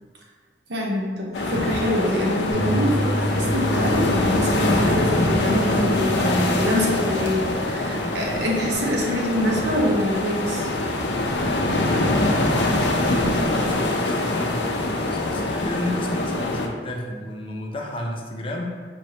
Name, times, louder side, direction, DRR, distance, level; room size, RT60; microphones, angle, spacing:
voice 1, 0.7-10.7, equal, 70° right, -1 dB, 0.8 m, -25 dB
sound 1, 1.3-16.7, left 2 dB, 80° left, 0.6 m, -24 dB
Bass guitar, 2.5-8.7, equal, 15° right, 0.9 m, -31 dB
voice 2, 11.8-18.6, left 1 dB, 30° left, -1 dB, 0.6 m, -32 dB
5.2 x 3.2 x 2.9 m, 1.5 s
head